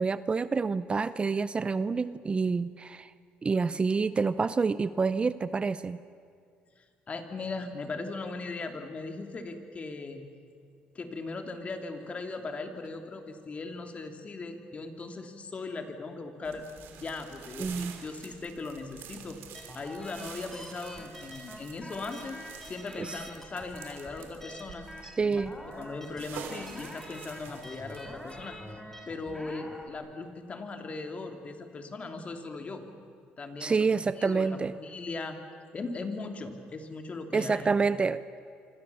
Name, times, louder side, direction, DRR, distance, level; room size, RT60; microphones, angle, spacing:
voice 1, 0.0-3.1 3.4-6.0 17.6-18.0 23.0-23.2 25.0-25.5 33.6-34.8 37.3-38.2, right 4 dB, 30° right, 15 dB, 0.6 m, -28 dB
voice 2, 6.8-10.2 10.9-16.6 16.9-22.4 22.7-24.8 25.2-25.4 25.8-28.8 29.1-32.8 33.4-34.5 34.7-35.4 35.7-37.7, left 3 dB, 35° left, 5 dB, 3.1 m, -39 dB
sound 1, 16.4-28.7, right 7 dB, 75° right, 3.2 m, -48 dB
sound 2, 19.5-29.9, left 1 dB, 10° left, 4.1 m, -46 dB
26.5 x 25.5 x 7.2 m, 2.3 s
cardioid pair, 85°, 4 cm